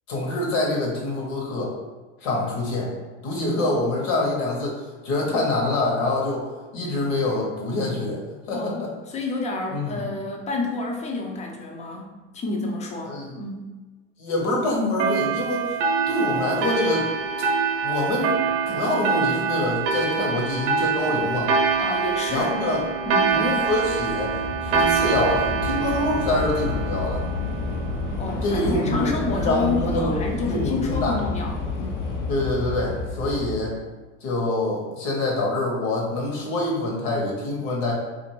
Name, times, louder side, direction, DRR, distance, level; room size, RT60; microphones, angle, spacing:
voice 1, 0.1-1.7 2.2-2.9 3.2-4.8 5.0-6.5 6.7-8.2 8.5-8.9 9.7-10.0 13.0-13.3 14.2-15.8 16.1-17.1 17.8-21.5 22.3-22.8 23.3-24.3 24.6-27.2 28.4-31.2 32.3-33.7 34.2-37.9, left 2 dB, 60° left, -2 dB, 1.1 m, -25 dB
voice 2, 8.5-13.7 21.8-22.6 23.1-23.4 28.2-32.1, left 3 dB, 20° left, 1 dB, 0.5 m, -29 dB
sound 1, 15.0-28.1, right 5 dB, 50° right, 0.6 m, -25 dB
Train / Subway metro underground, 20.9-21.0 21.1-33.7, left 3 dB, 75° left, 0.7 m, -30 dB
2.5 x 2.5 x 3.0 m, 1.3 s
hypercardioid pair, 95°, 37 cm